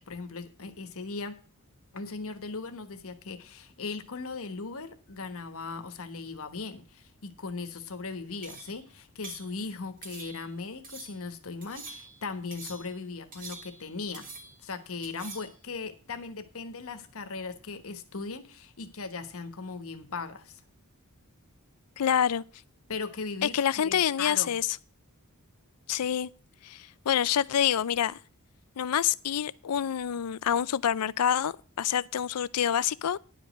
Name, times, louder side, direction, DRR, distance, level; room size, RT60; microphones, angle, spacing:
voice 1, 0.0-1.4 1.9-14.3 14.6-20.6 22.9-24.6, left 4 dB, 65° left, 1.3 m, -38 dB
sound 1, 8.4-8.8 9.2-9.5 10.0-10.5 10.8-11.2 11.6-12.2 12.5-12.9 13.3-13.9 14.1-14.7 15.0-15.6, right 4 dB, 40° right, 2.2 m, -45 dB
voice 2, 22.0-22.4 23.5-24.7 25.9-26.3 26.6-28.2 28.8-33.2, left 9 dB, 85° left, 0.5 m, -27 dB
10.5 x 5.2 x 7.8 m
head